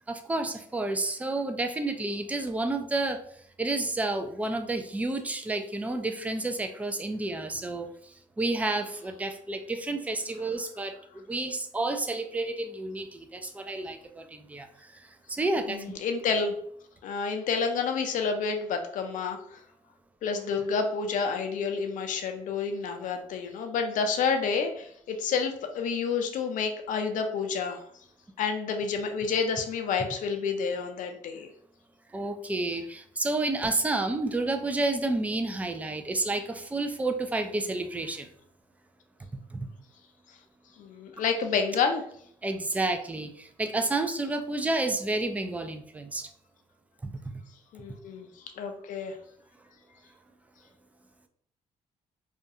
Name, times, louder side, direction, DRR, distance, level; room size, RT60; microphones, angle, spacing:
voice 1, 0.1-15.9 32.1-38.3 39.5-39.7 42.4-46.3, right 2 dB, 10° right, 6 dB, 0.3 m, -30 dB
voice 2, 15.7-16.5 17.0-19.6 20.2-27.8 28.4-31.5 40.8-42.0 47.7-48.3 48.6-49.2, left 5 dB, 65° left, 5 dB, 0.5 m, -29 dB
2.4 x 2.2 x 2.7 m, 0.65 s
supercardioid pair, 75°, 14 cm